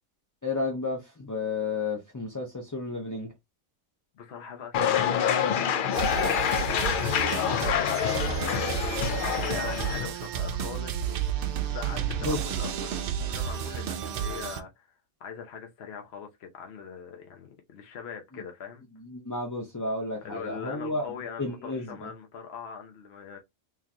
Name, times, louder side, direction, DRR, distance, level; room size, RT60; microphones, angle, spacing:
voice 1, 0.4-3.3 12.2-12.4 19.0-21.1 21.4-22.1, left 3 dB, 20° left, 0.5 m, -32 dB
voice 2, 4.1-5.5 5.9-7.2 7.4-8.7 9.0-11.3 11.7-14.9 15.2-18.8 20.2-23.4, left 6 dB, 55° left, 0.9 m, -41 dB
sound 1, 4.7-10.1, left 8 dB, 75° left, 0.4 m, -26 dB
sound 2, 5.9-14.6, right 9 dB, 60° right, 0.6 m, -31 dB
3.9 x 3.1 x 2.8 m
omnidirectional pair, 1.4 m